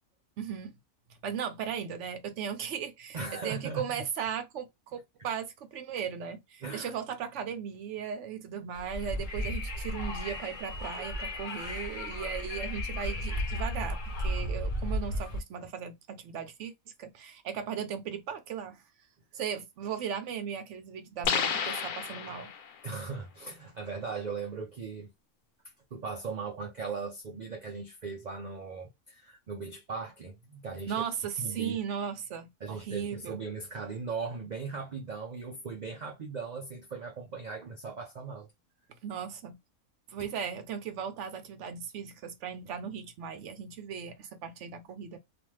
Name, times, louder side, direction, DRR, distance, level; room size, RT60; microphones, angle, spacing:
voice 1, 0.4-0.8 1.2-3.2 3.4-16.7 17.0-18.8 19.3-22.5 30.9-33.4 39.0-39.6 40.1-45.2, right 7 dB, 65° right, 0.8 m, -37 dB
voice 2, 3.1-4.0 6.6-6.9 22.8-25.1 25.9-31.0 31.4-31.8 32.6-38.5, right 4 dB, 85° right, 0.3 m, -38 dB
Wind, 8.7-15.4, equal, 40° left, 0.8 m, -34 dB
sound 1, 21.2-22.8, left 7 dB, 85° left, 1.1 m, -31 dB
2.5 x 2.4 x 3.1 m
omnidirectional pair, 1.5 m